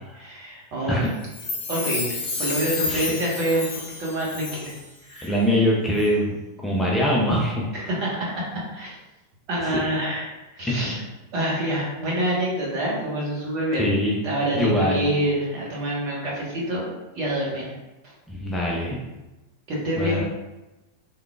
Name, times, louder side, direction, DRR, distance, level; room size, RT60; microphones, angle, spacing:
voice 1, 0.2-1.0 1.7-4.7 5.1-5.6 7.7-8.5 8.7-9.0 9.5-11.0 11.3-13.8 14.2-16.9 17.1-17.8 19.7-20.2, right 1 dB, 40° right, -4 dB, 1.3 m, -27 dB
Chime, 1.2-4.9 5.1-5.2, left 3 dB, 50° left, 0.9 m, -30 dB
voice 2, 5.2-7.6 9.6-9.8 10.7-10.9 13.8-14.2 14.5-15.1 18.3-19.0 20.0-20.2, equal, 10° left, -4 dB, 0.6 m, -23 dB
3.6 x 3.1 x 2.3 m, 1.0 s
figure-of-eight pair, 90°, 0 cm